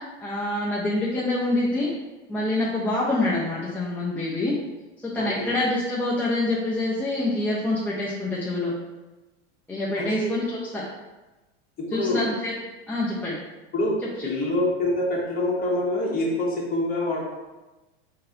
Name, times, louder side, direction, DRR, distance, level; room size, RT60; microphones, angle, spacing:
voice 1, 0.2-1.9 2.3-4.6 5.0-8.7 9.7-10.8 11.9-12.5 12.9-13.4 14.0-14.1, left 2 dB, 5° left, -7 dB, 0.5 m, -26 dB
voice 2, 5.2-5.5 10.0-10.3 11.8-12.3 13.7-17.2, left 1 dB, 25° left, -3 dB, 1.3 m, -26 dB
3.8 x 2.8 x 3.8 m, 1.1 s
hypercardioid pair, 110°, 35 cm